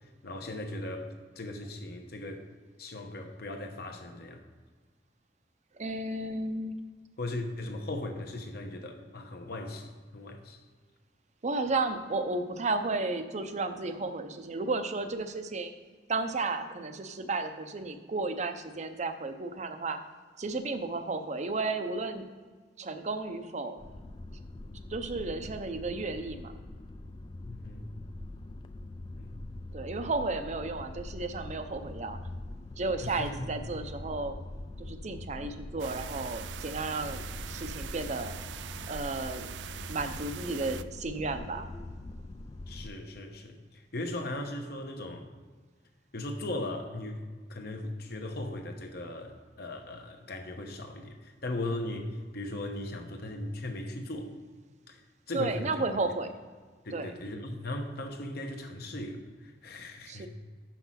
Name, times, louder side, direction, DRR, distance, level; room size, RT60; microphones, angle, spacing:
voice 1, 0.2-2.5 2.8-4.4 7.2-10.6 27.4-27.9 29.2-29.3 33.0-33.4 42.7-45.3 46.1-54.3 54.9-55.0 55.3-55.8 56.8-60.3, left 1 dB, 60° left, 4 dB, 1.0 m, -38 dB
voice 2, 5.8-6.7 11.4-15.7 16.1-20.0 20.4-22.3 22.8-23.8 24.9-26.5 29.7-32.2 32.8-34.3 34.8-37.2 37.5-38.4 38.9-39.5 39.9-41.7 55.3-56.3 56.9-57.1 60.1-60.3, right 3 dB, 40° right, 8 dB, 0.7 m, -33 dB
sound 1, 23.8-42.9, left 2 dB, 25° left, 0.3 m, -43 dB
sound 2, 35.8-40.8, right 9 dB, 80° right, 0.3 m, -42 dB
6.1 x 5.8 x 5.7 m, 1.5 s
head